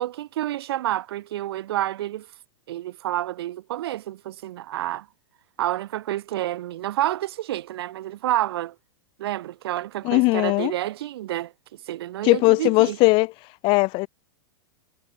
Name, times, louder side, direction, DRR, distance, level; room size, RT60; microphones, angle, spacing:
voice 1, 0.0-2.3 2.7-5.1 5.6-8.7 9.2-11.5 11.9-13.0, right 14 dB, 70° right, 7.9 m, -29 dB
voice 2, 10.0-10.7 12.2-13.3 13.6-14.1, left 25 dB, 40° left, 3.1 m, -19 dB
supercardioid pair, 145°, 13 cm